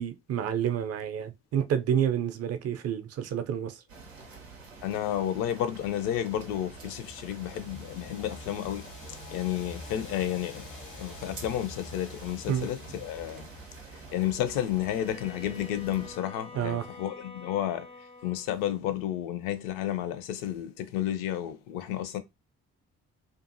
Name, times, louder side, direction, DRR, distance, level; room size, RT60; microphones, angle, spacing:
voice 1, 0.0-3.8 12.5-12.7 16.5-16.9, right 9 dB, 40° right, 0.5 m, -29 dB
sound 1, 3.9-16.2, right 4 dB, 90° right, 0.5 m, -48 dB
voice 2, 4.8-8.9 9.3-13.5 14.1-17.9 18.2-22.2, left 11 dB, 60° left, 0.6 m, -31 dB
sound 2, 6.3-15.0, left 3 dB, 85° left, 1.0 m, -47 dB
Bowed string instrument, 14.8-18.5, left 3 dB, 15° left, 0.4 m, -47 dB
2.5 x 2.5 x 2.6 m
figure-of-eight pair, 40°, 37 cm